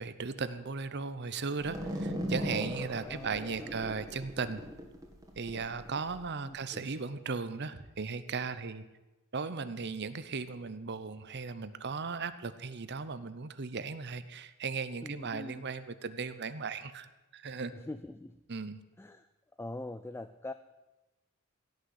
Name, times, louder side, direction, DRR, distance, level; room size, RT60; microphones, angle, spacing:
voice 1, 0.0-4.6 5.4-8.8 9.3-17.1 17.3-17.7 18.5-18.8, right 4 dB, 50° right, 13 dB, 0.8 m, -37 dB
sound 1, 1.6-6.3, equal, 15° right, 2.1 m, -38 dB
voice 2, 3.0-3.7 6.4-6.9 15.0-15.6 17.7-18.4 19.0-19.3 19.6-20.5, left 2 dB, 10° left, 11 dB, 0.4 m, -43 dB
17.0 x 6.6 x 9.6 m, 1.1 s
head